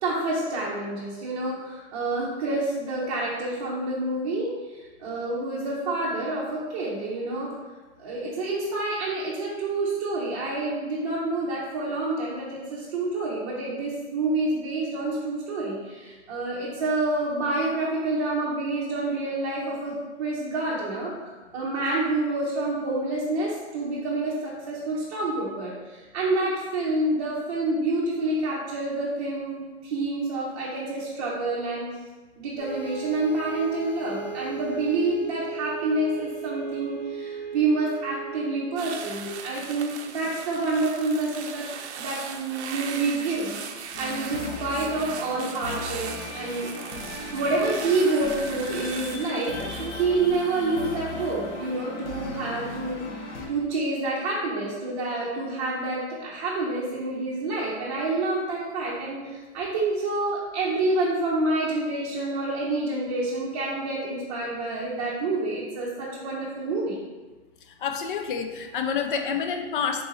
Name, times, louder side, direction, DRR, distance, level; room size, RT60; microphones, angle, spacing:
voice 1, 0.0-7.5 8.0-21.1 21.5-31.9 32.4-41.7 42.0-46.7 47.3-67.0, right 2 dB, 35° right, -6 dB, 0.7 m, -28 dB
sound 1, 32.6-40.3, right 6 dB, 70° left, 1.2 m, -37 dB
sound 2, 38.8-52.1 52.5-52.8, right 7 dB, 75° right, 0.5 m, -39 dB
sound 3, 43.9-53.5, left 3 dB, 90° left, 0.8 m, -37 dB
voice 2, 67.8-70.1, left 6 dB, 50° left, 5 dB, 0.4 m, -28 dB
3.8 x 2.7 x 3.8 m, 1.3 s
hypercardioid pair, 165°, 34 cm